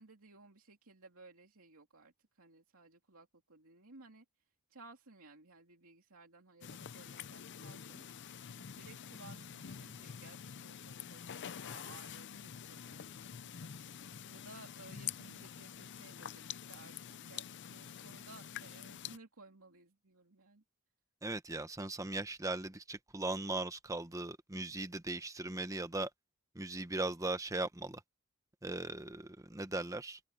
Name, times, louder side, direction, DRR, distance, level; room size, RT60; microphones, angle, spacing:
voice 1, 0.0-8.0 8.4-20.6, right 3 dB, 75° right, 2.7 m, -58 dB
sound 1, 6.6-19.2, left 8 dB, 55° left, 0.6 m, -47 dB
voice 2, 21.2-26.1 26.5-28.0 28.6-30.2, right 2 dB, 15° right, 1.0 m, -38 dB
open air
head